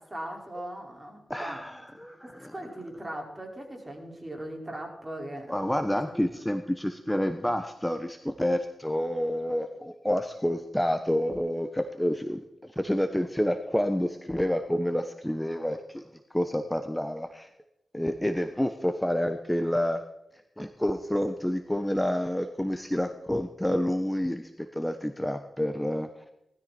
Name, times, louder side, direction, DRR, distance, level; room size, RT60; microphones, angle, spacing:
voice 1, 0.0-1.6 2.2-6.1, right 1 dB, 20° right, 1 dB, 5.4 m, -39 dB
voice 2, 1.3-2.5 5.5-16.0 16.3-17.5 17.9-20.0 20.6-26.2, equal, 10° left, 8 dB, 1.2 m, -29 dB
19.0 x 13.5 x 4.5 m, 0.87 s
cardioid pair, 55°, 0 cm